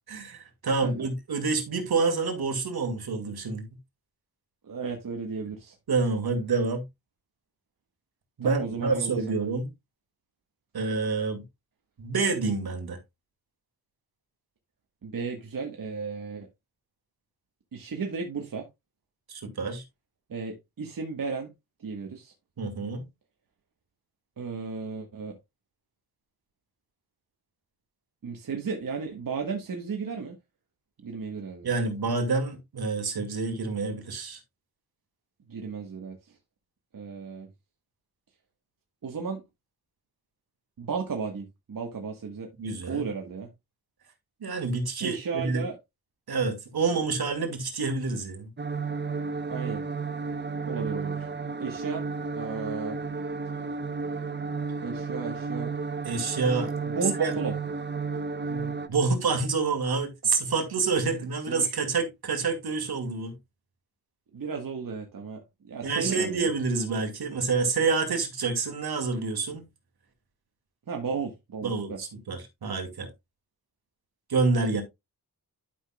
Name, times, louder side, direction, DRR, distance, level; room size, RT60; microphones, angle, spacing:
voice 1, 0.1-3.7 5.9-6.8 8.4-9.7 10.7-11.4 12.0-13.0 19.3-19.8 22.6-23.0 31.6-34.4 42.6-43.1 44.4-45.6 46.3-48.5 56.0-56.7 57.2-57.3 58.5-63.4 65.8-69.6 71.6-73.1 74.3-74.8, right 4 dB, 75° right, 2.3 m, -28 dB
voice 2, 4.6-5.7 8.4-9.2 15.0-16.5 17.7-18.7 20.3-21.5 21.8-22.3 24.4-25.4 28.2-30.4 31.0-31.8 35.5-36.3 36.9-37.5 39.0-39.4 40.8-42.5 42.9-43.5 45.0-45.8 49.5-49.8 50.7-51.3 51.6-52.0 52.3-53.0 54.8-55.7 56.8-57.5 61.1-61.2 61.5-61.7 64.3-66.5 70.9-72.0, right 5 dB, 55° right, 1.5 m, -34 dB
sound 1, 48.6-58.9, right 4 dB, 30° right, 0.8 m, -32 dB
11.5 x 5.9 x 2.3 m
wide cardioid pair, 95°, 38 cm